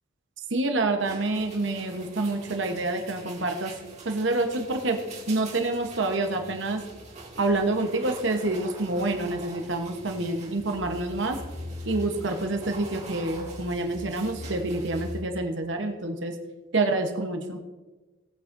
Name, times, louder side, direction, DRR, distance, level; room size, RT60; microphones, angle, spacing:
voice 1, 0.5-3.7 4.0-5.0 5.3-6.8 7.4-11.4 11.8-16.3 16.7-17.6, right 2 dB, 65° right, 4 dB, 1.0 m, -27 dB
sound 1, 1.0-15.2, right 1 dB, 35° right, 2.2 m, -42 dB
18.5 x 8.8 x 2.6 m, 1.2 s
head